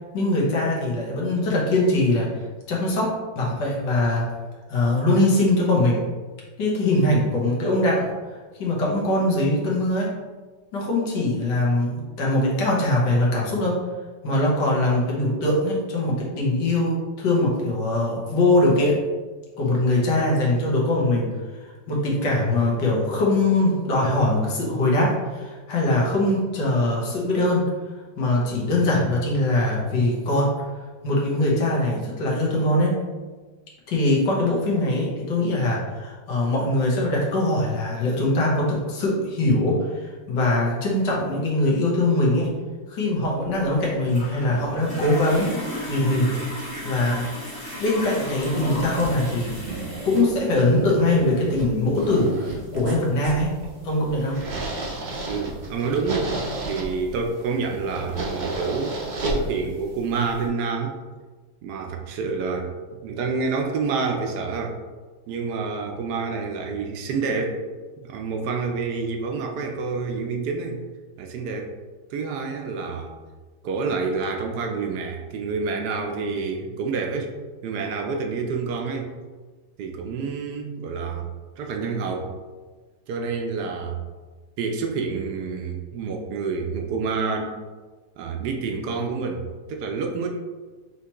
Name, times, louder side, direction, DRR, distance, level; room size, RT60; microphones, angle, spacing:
voice 1, 0.1-2.3 2.7-4.3 4.7-6.0 6.6-8.1 8.6-10.1 10.7-13.8 14.2-19.0 19.6-21.4 21.9-27.7 28.2-30.5 31.0-33.0 33.9-42.6 42.9-45.6 45.9-46.3 46.8-47.3 47.8-49.6 50.0-53.5 53.8-54.4, left 1 dB, 80° left, -4 dB, 1.7 m, -22 dB
sound 1, 43.2-50.2, equal, 15° left, 1.0 m, -34 dB
sound 2, 48.5-60.5, right 2 dB, 50° right, 0.5 m, -33 dB
voice 2, 55.3-56.3 56.6-61.0 61.6-64.8 65.3-67.6 68.0-70.8 71.2-71.7 72.1-73.1 73.6-77.3 77.6-79.2 79.8-81.3 81.6-82.3 83.1-84.0 84.6-87.6 88.2-90.3, right 4 dB, 75° right, 3 dB, 1.1 m, -28 dB
5.7 x 3.0 x 2.9 m, 1.4 s
omnidirectional pair, 1.9 m